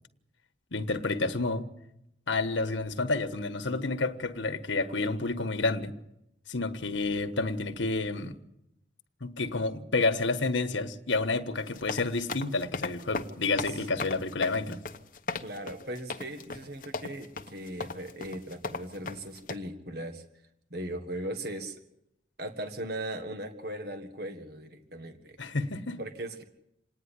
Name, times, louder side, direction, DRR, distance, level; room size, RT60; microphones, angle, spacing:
voice 1, 0.7-1.6 2.3-5.9 6.5-8.3 9.2-14.8 25.4-26.0, left 3 dB, 80° left, 1.4 m, -29 dB
sound 1, 11.6-19.6, left 4 dB, 45° left, 1.0 m, -37 dB
voice 2, 15.4-20.2 20.7-21.8 22.4-25.4 26.0-26.4, right 1 dB, 55° right, 1.7 m, -38 dB
27.0 x 10.0 x 10.0 m
head